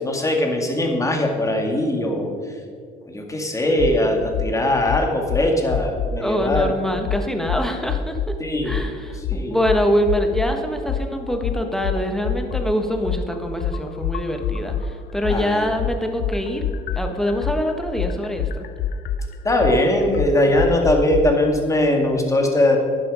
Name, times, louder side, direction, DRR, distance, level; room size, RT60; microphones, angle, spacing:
voice 1, 0.0-2.3 3.1-6.7 8.4-8.8 9.3-9.6 15.3-15.7 19.4-22.8, left 1 dB, 20° left, 3 dB, 2.1 m, -20 dB
sound 1, 3.8-4.0 4.3-4.5 4.9-6.2 6.5-6.7 7.1-8.3 8.7-8.9 9.2-10.5 10.9-14.9 15.2-21.2, left 7 dB, 70° left, 0.6 m, -25 dB
voice 2, 6.2-8.2 8.6-16.6 16.9-18.6, equal, ahead, 5 dB, 1.4 m, -24 dB
11.5 x 10.5 x 4.9 m, 2.1 s
cardioid pair, 110°, 17 cm